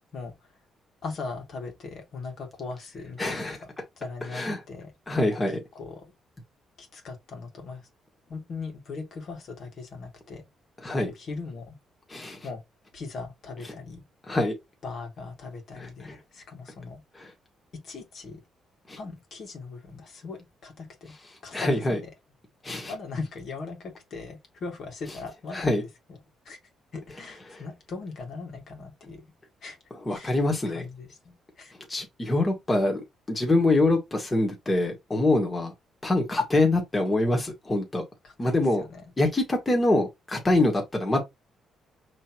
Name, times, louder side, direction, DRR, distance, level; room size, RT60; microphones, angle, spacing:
voice 1, 0.1-0.5 1.0-3.7 4.0-4.9 5.7-6.1 6.8-7.9 8.3-10.5 11.0-11.8 12.4-12.6 12.9-14.0 14.8-17.0 17.7-18.4 19.0-21.1 21.4-22.1 22.9-26.2 26.5-26.6 26.9-29.3 29.6-29.8 30.1-30.4 30.7-31.7 38.2-39.0, left 4 dB, 60° left, 1.9 m, -39 dB
voice 2, 3.2-3.6 4.3-4.6 5.1-5.6 10.8-11.1 12.1-12.5 14.3-14.5 15.8-16.1 17.2-17.3 18.9-19.0 21.5-22.0 22.6-22.9 25.5-25.8 27.5-27.6 30.0-30.8 31.9-33.0 33.3-35.7 36.0-38.0 38.4-38.8 39.2-41.2, left 2 dB, 20° left, 1.7 m, -25 dB
5.5 x 3.3 x 2.9 m
cardioid pair, 90°, 0 cm